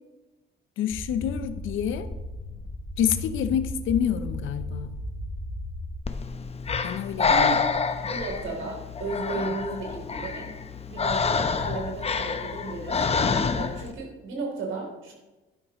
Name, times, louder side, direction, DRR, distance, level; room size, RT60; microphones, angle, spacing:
voice 1, 0.8-2.1 3.0-5.0 6.8-7.6, left 9 dB, 80° left, 11 dB, 0.8 m, -27 dB
sound 1, 0.9-6.0, left 1 dB, 55° left, 4.2 m, -35 dB
Breathing, 6.0-13.9, left 5 dB, 30° left, 0.8 m, -27 dB
voice 2, 8.0-10.5 10.9-13.0 13.6-15.1, right 3 dB, 80° right, 0 dB, 3.5 m, -34 dB
11.5 x 11.0 x 3.1 m, 1.1 s
cardioid pair, 90°, 20 cm